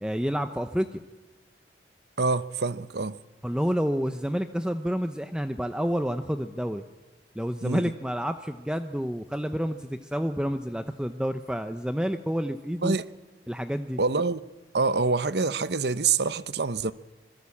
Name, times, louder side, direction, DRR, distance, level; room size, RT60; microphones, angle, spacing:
voice 1, 0.0-1.0 3.4-6.8 7.3-13.0 13.5-14.0, equal, 5° right, 0.8 m, -29 dB
voice 2, 2.2-3.2 7.6-7.9 12.8-13.0 14.0-14.4 14.7-16.9, right 4 dB, 65° right, 0.9 m, -26 dB
26.0 x 21.5 x 8.6 m
head